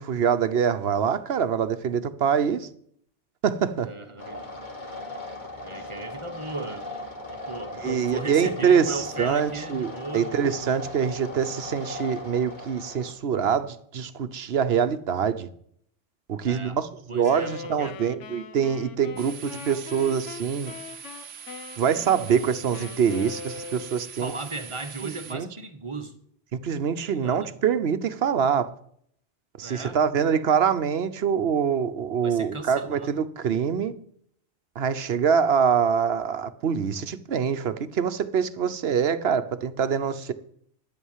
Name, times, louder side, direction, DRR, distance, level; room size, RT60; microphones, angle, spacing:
voice 1, 0.0-2.7 3.4-3.9 7.8-15.5 16.3-20.7 21.8-24.3 25.0-25.5 26.6-28.7 29.6-33.9 34.8-40.3, right 7 dB, 65° right, 1.0 m, -25 dB
voice 2, 3.8-4.4 5.6-6.9 7.3-10.3 16.4-16.8 17.1-18.0 24.2-26.1 27.1-27.5 29.6-30.0 32.2-33.1, right 3 dB, 25° right, 1.2 m, -36 dB
sound 1, 4.2-13.1, left 2 dB, 40° left, 2.0 m, -38 dB
Wind instrument woodwind instrument, 17.2-24.2, left 5 dB, 85° left, 1.2 m, -41 dB
sound 2, 19.2-25.3, right 7 dB, 90° right, 1.0 m, -43 dB
11.5 x 9.0 x 7.3 m
omnidirectional pair, 1.2 m